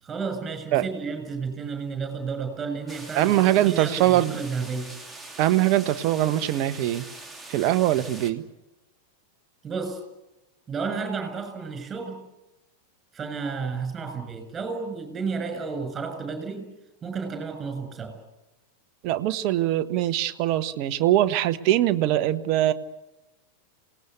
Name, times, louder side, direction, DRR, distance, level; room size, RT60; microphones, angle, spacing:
voice 1, 0.0-3.3 3.7-4.9 9.6-10.0 10.7-12.2 13.1-16.7 17.0-18.1, right 5 dB, 20° right, 8 dB, 7.0 m, -32 dB
sound 1, 2.9-8.3, right 2 dB, 5° right, 2.7 m, -43 dB
voice 2, 3.1-4.4 5.4-7.1 7.5-8.4 19.0-22.7, right 13 dB, 45° right, 10 dB, 1.2 m, -22 dB
27.5 x 19.0 x 8.3 m, 0.98 s
figure-of-eight pair, 90°, 0 cm